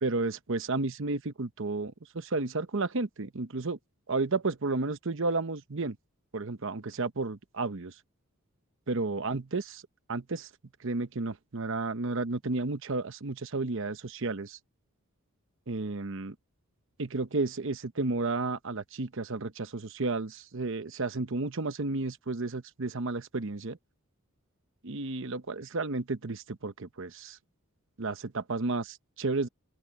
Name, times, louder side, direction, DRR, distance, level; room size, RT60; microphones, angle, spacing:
voice 1, 0.0-3.8 4.1-6.0 6.3-7.9 8.9-9.8 10.1-10.5 10.8-14.6 15.7-16.3 17.0-23.8 24.8-27.4 28.0-29.5, right 3 dB, 60° right, 0.9 m, -32 dB
open air
head